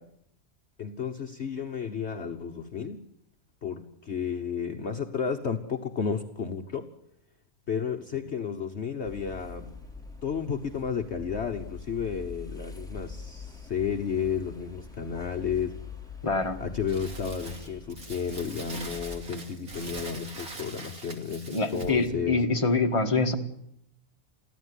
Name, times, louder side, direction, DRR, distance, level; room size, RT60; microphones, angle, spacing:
voice 1, 0.8-3.0 3.6-6.9 7.7-9.7 10.2-15.7 16.6-22.4, left 6 dB, 50° left, 4 dB, 1.3 m, -32 dB
sound 1, 9.0-19.3, left 4 dB, ahead, 3.0 m, -44 dB
voice 2, 16.2-16.6 21.5-23.3, left 3 dB, 20° left, 3 dB, 1.8 m, -25 dB
Crumpling crinkling, 16.9-22.1, right 2 dB, 75° right, 3.3 m, -42 dB
23.5 x 15.0 x 9.9 m, 0.74 s
omnidirectional pair, 1.5 m